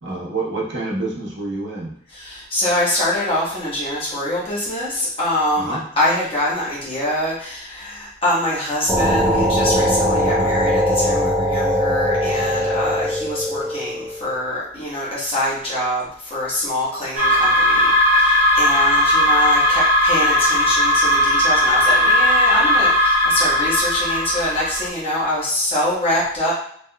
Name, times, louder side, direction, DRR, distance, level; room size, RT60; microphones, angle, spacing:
voice 1, 0.0-1.9 5.5-5.9, right 2 dB, 85° right, -3 dB, 0.9 m, -27 dB
voice 2, 2.1-26.5, left 1 dB, 30° left, -8 dB, 1.2 m, -24 dB
sound 1, 8.9-14.3, equal, 15° right, 0.4 m, -20 dB
sound 2, 17.2-24.9, left 1 dB, 40° right, 0.9 m, -17 dB
3.4 x 2.9 x 2.2 m, 0.64 s
head